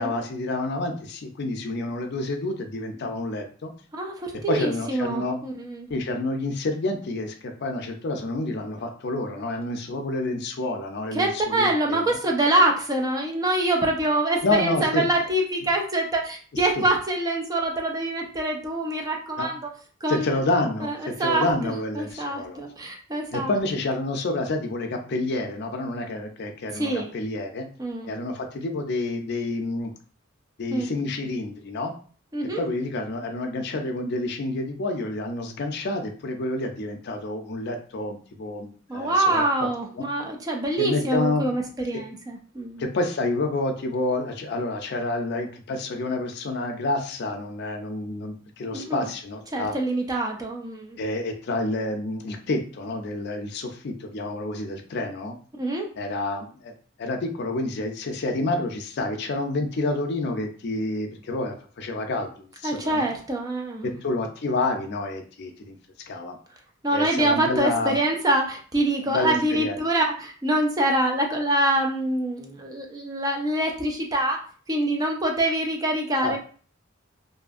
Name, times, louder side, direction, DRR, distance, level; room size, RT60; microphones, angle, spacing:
voice 1, 0.0-3.7 4.5-5.4 5.9-12.2 14.4-15.0 16.8-16.9 19.4-19.5 20.1-22.6 23.3-27.7 28.1-29.9 30.6-31.9 32.6-40.1 40.8-41.5 42.8-49.8 51.0-55.3 56.0-56.7 57.0-63.1 63.8-65.8 66.1-66.4 66.9-68.0 69.0-69.8 76.2-76.4, left 2 dB, 55° left, 4 dB, 0.4 m, -28 dB
voice 2, 3.9-5.9 11.1-19.6 20.0-20.2 21.2-23.5 26.7-27.1 27.8-28.1 30.7-30.8 32.3-32.6 38.9-42.9 48.7-49.1 49.5-51.0 55.6-55.9 62.6-63.9 66.8-74.4 74.7-76.4, right 1 dB, 20° right, 1 dB, 0.4 m, -25 dB
2.6 x 2.5 x 2.4 m, 0.42 s
head